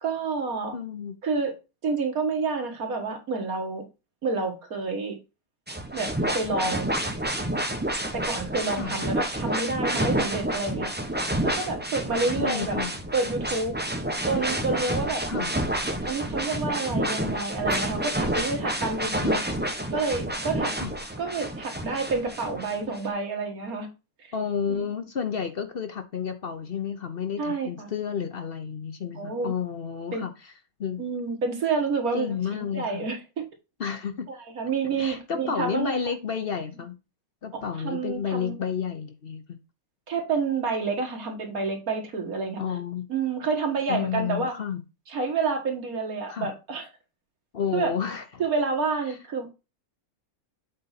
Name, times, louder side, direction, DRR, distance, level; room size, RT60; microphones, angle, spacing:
voice 1, 0.0-0.8 1.2-1.5 1.8-3.9 4.2-5.2 5.9-6.9 8.1-10.9 11.4-12.8 13.1-13.8 14.3-15.2 16.0-19.4 19.9-20.7 21.2-23.9 24.2-24.3 24.7-24.9 27.4-27.9 29.1-29.5 30.1-30.2 31.0-33.2 34.3-36.1 37.8-38.6 40.1-42.6 43.1-44.6 45.1-46.9 47.7-47.9 48.4-49.5, right 4 dB, 75° right, 2.1 m, -29 dB
voice 2, 0.7-1.2 8.8-8.9 12.4-13.0 15.3-15.5 19.2-19.4 20.8-21.1 24.3-30.3 30.8-31.0 32.1-33.1 33.8-34.3 35.0-37.0 37.4-39.6 42.6-43.1 43.9-44.8 46.3-46.5 47.5-48.2 49.1-49.2, left 7 dB, 50° left, 0.8 m, -31 dB
sound 1, 5.7-23.0, right 1 dB, 10° right, 0.9 m, -29 dB
7.8 x 4.1 x 4.1 m
omnidirectional pair, 1.5 m